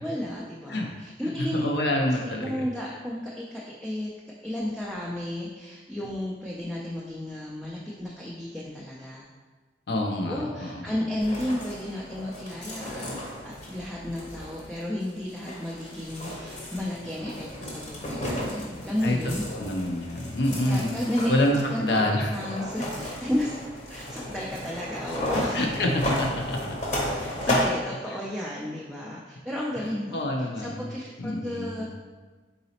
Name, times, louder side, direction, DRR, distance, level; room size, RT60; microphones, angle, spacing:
voice 1, 0.0-1.7 2.2-4.1 4.4-9.3 10.3-19.5 20.7-21.3 21.7-25.7 27.0-31.9, left 1 dB, ahead, -6 dB, 0.4 m, -33 dB
voice 2, 1.5-2.6 9.9-10.8 19.0-19.2 19.4-20.9 21.3-22.3 25.5-26.6 27.5-27.7 30.1-30.9 31.2-31.8, left 1 dB, 60° left, 1 dB, 0.5 m, -27 dB
sound 1, 11.2-27.7, left 1 dB, 40° left, 0.8 m, -34 dB
4.0 x 4.0 x 2.8 m, 1.3 s
head